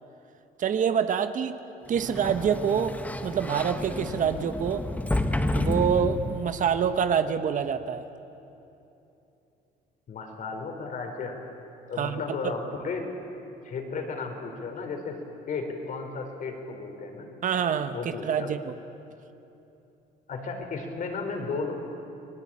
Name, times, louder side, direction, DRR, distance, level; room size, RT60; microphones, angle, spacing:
voice 1, 0.6-1.6 1.9-4.9 5.5-8.1 12.0-12.2 17.4-18.8, right 7 dB, 50° right, 10 dB, 1.2 m, -26 dB
Sliding door, 1.9-6.6, left 1 dB, 10° left, 1.5 m, -30 dB
voice 2, 10.1-11.4 11.9-13.0 13.6-15.2 15.5-17.3 17.9-18.5 20.3-21.7, left 4 dB, 50° left, 4 dB, 4.4 m, -34 dB
29.5 x 19.0 x 8.8 m, 2.9 s
cardioid pair, 110°, 17 cm